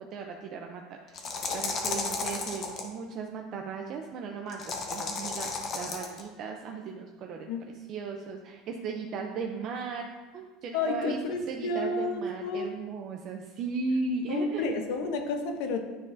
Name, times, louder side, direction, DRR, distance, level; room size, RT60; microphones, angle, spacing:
voice 1, 0.1-0.8 1.1-1.2 1.5-7.5 7.7-10.0 10.3-14.7, right 4 dB, 45° right, 2 dB, 0.5 m, -36 dB
sound 1, 1.1-2.9 4.5-6.2, left 4 dB, 40° left, 0.9 m, -33 dB
voice 2, 10.7-12.7 14.3-15.8, left 3 dB, 70° left, 6 dB, 0.8 m, -31 dB
9.7 x 3.8 x 2.6 m, 1.3 s
supercardioid pair, 130°, 0 cm